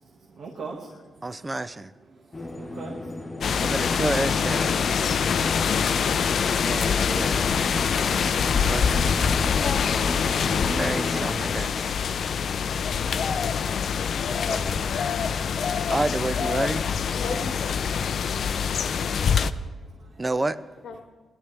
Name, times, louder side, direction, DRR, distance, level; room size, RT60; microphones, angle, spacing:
voice 1, 0.3-1.3 2.1-3.6 5.4-5.6 7.8-9.0 19.8-20.2, right 4 dB, 60° right, -2 dB, 1.8 m, -44 dB
voice 2, 1.2-1.9 3.6-4.8 6.6-7.4 8.6-9.4 10.7-11.9 14.4-14.8 15.6-16.8 20.2-20.6, right 2 dB, 20° right, 14 dB, 0.4 m, -30 dB
sound 1, 2.3-11.3, left 1 dB, 15° left, 1.1 m, -35 dB
sound 2, 3.4-19.5, left 6 dB, 60° left, 0.5 m, -25 dB
voice 3, 9.5-9.9 11.8-12.2 17.1-17.7 20.2-20.5 20.8-21.0, left 4 dB, 80° left, 6 dB, 1.4 m, -35 dB
21.0 x 12.0 x 3.4 m, 1.3 s
wide cardioid pair, 145°, 0 cm